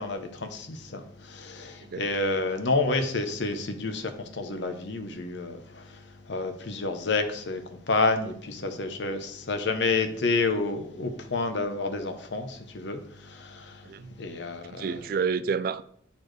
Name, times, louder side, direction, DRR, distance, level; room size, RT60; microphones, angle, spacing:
voice 1, 0.0-15.0, left 3 dB, 70° left, 0.8 m, -29 dB
voice 2, 14.7-15.8, right 6 dB, 50° right, 0.3 m, -29 dB
8.1 x 4.2 x 3.2 m
head